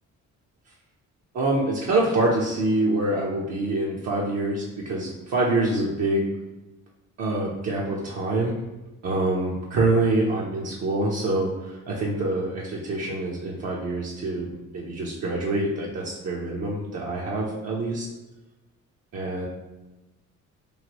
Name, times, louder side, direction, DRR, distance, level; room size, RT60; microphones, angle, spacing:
voice 1, 1.3-6.3 7.2-8.6 9.0-14.5 14.7-18.1 19.1-19.5, right 2 dB, 55° right, -4 dB, 0.6 m, -25 dB
3.1 x 2.5 x 2.9 m, 1.1 s
cardioid pair, 90°, 30 cm